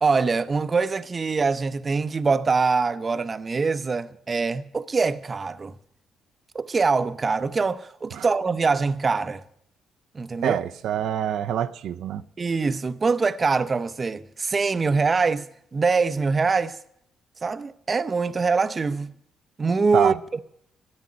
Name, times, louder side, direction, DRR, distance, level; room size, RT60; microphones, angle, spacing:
voice 1, 0.0-5.8 6.5-9.4 10.1-10.6 12.4-16.8 17.4-19.1 19.6-20.4, right 4 dB, 35° right, 0.7 m, -24 dB
voice 2, 10.4-12.2 19.9-20.2, right 10 dB, 80° right, 0.6 m, -25 dB
14.0 x 8.9 x 9.6 m
cardioid pair, 90°, 0 cm